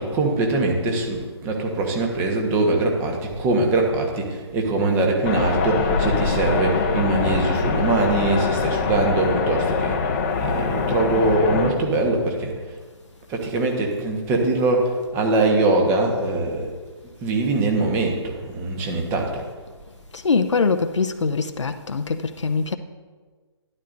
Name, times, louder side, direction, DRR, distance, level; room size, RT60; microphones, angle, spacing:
voice 1, 0.0-10.0 10.3-12.8 13.3-16.7 17.2-19.4, right 2 dB, 15° right, 1.2 m, -22 dB
sound 1, 5.2-11.7, left 5 dB, 25° left, 0.8 m, -23 dB
voice 2, 20.2-22.8, left 4 dB, 85° left, 0.7 m, -22 dB
12.0 x 11.0 x 2.6 m
figure-of-eight pair, 150°, 15 cm